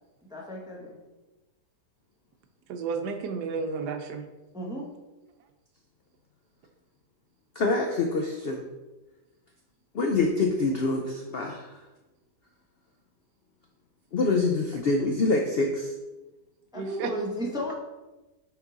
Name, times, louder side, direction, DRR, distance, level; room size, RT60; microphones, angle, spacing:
voice 1, 0.3-1.0 4.5-4.9 16.7-17.7, equal, 5° right, -3 dB, 0.8 m, -34 dB
voice 2, 2.7-4.2 16.7-17.1, right 5 dB, 80° right, 6 dB, 1.3 m, -32 dB
voice 3, 7.6-8.6 9.9-11.7 14.1-15.9, left 3 dB, 80° left, 2 dB, 0.5 m, -25 dB
5.7 x 4.5 x 3.9 m, 1.1 s
omnidirectional pair, 1.7 m